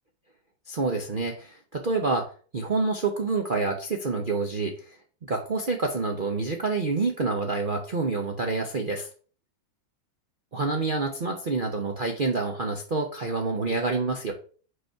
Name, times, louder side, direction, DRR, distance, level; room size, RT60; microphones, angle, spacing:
voice 1, 0.7-9.1 10.5-14.3, right 3 dB, 65° right, 2 dB, 0.5 m, -28 dB
5.3 x 4.1 x 5.6 m, 0.40 s
omnidirectional pair, 2.1 m